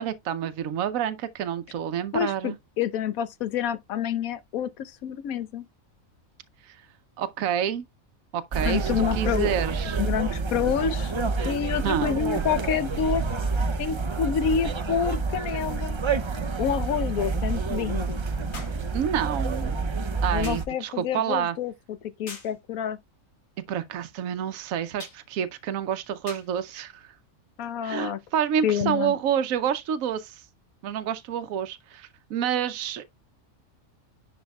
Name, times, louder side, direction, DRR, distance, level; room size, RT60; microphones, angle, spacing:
voice 1, 0.0-2.6 6.6-6.8 7.2-7.9 8.3-10.0 11.8-12.1 18.9-19.8 20.2-21.6 23.7-27.1 27.8-30.4 30.8-33.0, right 9 dB, 80° right, 1.1 m, -28 dB
voice 2, 2.1-5.6 8.6-9.6 10.0-11.1 11.4-13.2 13.8-16.0 16.6-18.2 20.3-21.7 22.2-23.0 27.6-28.2 28.6-29.1, left 8 dB, 90° left, 1.2 m, -28 dB
sound 1, 8.5-20.7, right 4 dB, 50° right, 0.3 m, -28 dB
sound 2, 18.5-18.9 20.4-20.7 22.3-22.6 25.0-25.3 26.3-26.6 27.6-27.7, left 3 dB, 70° left, 2.1 m, -42 dB
10.5 x 4.3 x 2.3 m
omnidirectional pair, 1.4 m